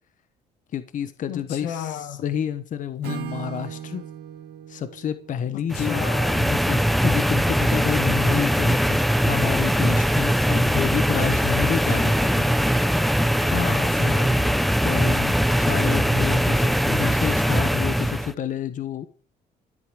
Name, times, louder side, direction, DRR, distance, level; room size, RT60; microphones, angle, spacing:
voice 1, 0.7-4.0 4.7-6.0 6.3-12.4 14.8-19.1, left 9 dB, 50° left, 1.2 m, -29 dB
voice 2, 1.3-2.2 5.5-6.5 13.4-14.6, left 9 dB, 85° left, 2.0 m, -33 dB
Acoustic guitar / Strum, 3.0-7.0, right 10 dB, 75° right, 2.1 m, -39 dB
sound 1, 5.7-18.3, equal, ahead, 0.8 m, -21 dB
14.0 x 8.1 x 7.6 m
cardioid pair, 110°, 17 cm